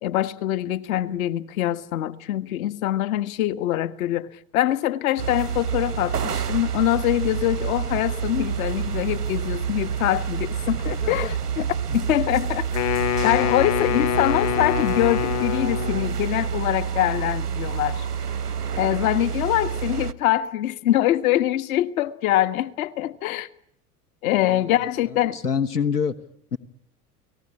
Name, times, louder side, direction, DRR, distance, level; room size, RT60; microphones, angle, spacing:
voice 1, 0.0-4.3 4.5-12.7 13.2-18.1 18.8-23.5 24.2-25.4, left 13 dB, 65° left, 1.6 m, -24 dB
sound 1, 5.2-20.1, right 7 dB, 90° right, 1.2 m, -28 dB
voice 2, 11.0-11.3 24.4-26.2 26.5-26.6, left 6 dB, 90° left, 1.4 m, -27 dB
Wind instrument woodwind instrument, 12.7-16.2, left 12 dB, 35° left, 1.0 m, -25 dB
30.0 x 19.5 x 9.9 m
figure-of-eight pair, 80°, 45 cm